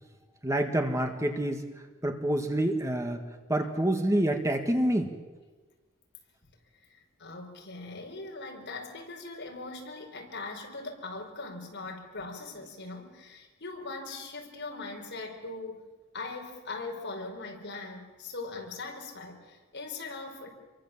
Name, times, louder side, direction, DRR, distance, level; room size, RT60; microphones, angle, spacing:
voice 1, 0.4-1.6 2.0-3.2 3.5-5.1, right 1 dB, 15° right, 5 dB, 1.7 m, -27 dB
voice 2, 6.9-15.9 16.1-20.5, left 3 dB, 60° left, 2 dB, 5.0 m, -40 dB
27.5 x 23.5 x 7.4 m, 1.3 s
head